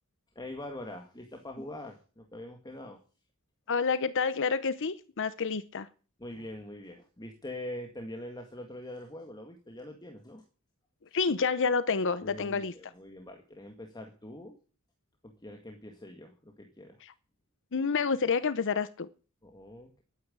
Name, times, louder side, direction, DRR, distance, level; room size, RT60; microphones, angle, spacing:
voice 1, 0.4-3.0 6.2-10.4 12.2-14.6 15.2-17.0 19.4-20.0, left 1 dB, 20° left, 3 dB, 1.9 m, -43 dB
voice 2, 3.7-5.9 11.1-12.7 17.0-17.1 17.7-19.1, left 5 dB, 60° left, 14 dB, 0.8 m, -29 dB
12.5 x 9.5 x 8.8 m, 0.37 s
head